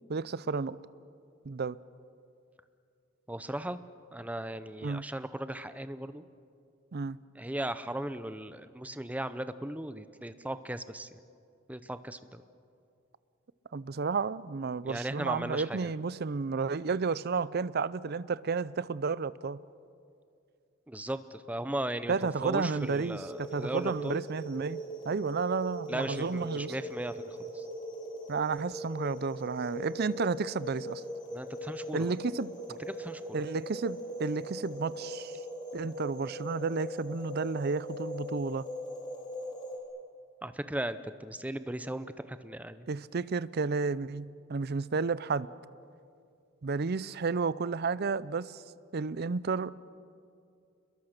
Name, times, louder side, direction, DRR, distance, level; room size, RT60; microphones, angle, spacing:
voice 1, 0.1-0.8 1.4-1.8 4.8-5.1 6.9-7.2 13.7-19.6 22.1-24.8 25.0-26.8 28.3-31.0 31.9-32.5 33.3-35.4 35.7-38.7 42.9-45.5 46.6-48.6 48.9-49.7, right 4 dB, 50° right, 0.5 m, -32 dB
voice 2, 3.3-3.8 4.1-6.2 7.4-11.1 11.7-12.4 14.8-15.9 20.9-22.1 22.4-24.2 25.9-27.6 31.3-32.1 32.9-33.2 40.4-42.9, right 1 dB, 5° right, 0.7 m, -37 dB
sound 1, 22.6-39.8, equal, 25° left, 3.9 m, -40 dB
29.0 x 22.0 x 6.6 m
head